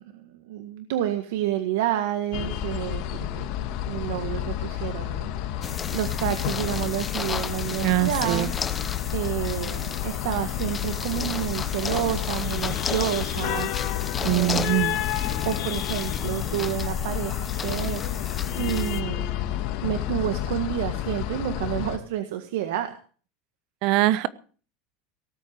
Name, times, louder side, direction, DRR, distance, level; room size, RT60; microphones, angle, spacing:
voice 1, 0.1-5.3 5.5-8.5 9.1-13.7 14.2-14.9 15.4-19.3 19.8-23.0, right 12 dB, 80° right, 8 dB, 1.8 m, -30 dB
sound 1, 2.3-22.0, left 12 dB, 55° left, 2.2 m, -30 dB
sound 2, 5.6-19.0, left 6 dB, 15° left, 1.2 m, -34 dB
voice 2, 7.8-8.5 14.2-15.0 23.8-24.3, right 17 dB, 50° right, 17 dB, 1.1 m, -22 dB
18.5 x 8.3 x 7.7 m, 0.41 s
supercardioid pair, 160°, 0 cm